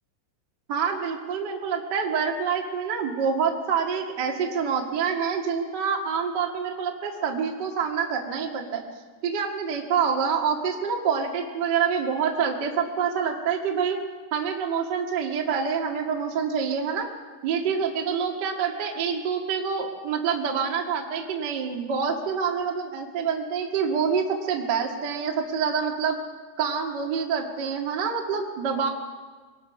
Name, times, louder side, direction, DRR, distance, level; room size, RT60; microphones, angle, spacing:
voice 1, 0.7-8.8 9.2-14.0 14.3-17.1 17.4-26.2 26.6-28.9, right 6 dB, 60° right, 1 dB, 1.1 m, -26 dB
23.0 x 19.0 x 5.8 m, 1.4 s
omnidirectional pair, 5.3 m